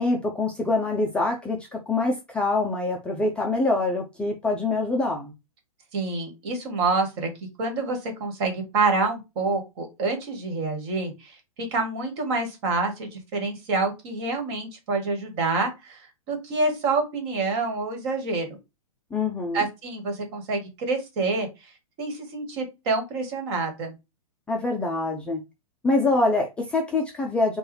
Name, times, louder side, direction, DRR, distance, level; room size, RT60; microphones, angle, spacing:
voice 1, 0.0-5.3 19.1-19.6 24.5-25.4 25.8-27.6, left 2 dB, 5° left, 0.3 m, -25 dB
voice 2, 5.9-7.3 7.6-11.3 11.7-18.5 19.5-21.5 22.0-23.9, right 3 dB, 45° right, 1.6 m, -27 dB
4.6 x 2.3 x 3.2 m
hypercardioid pair, 145°, 19 cm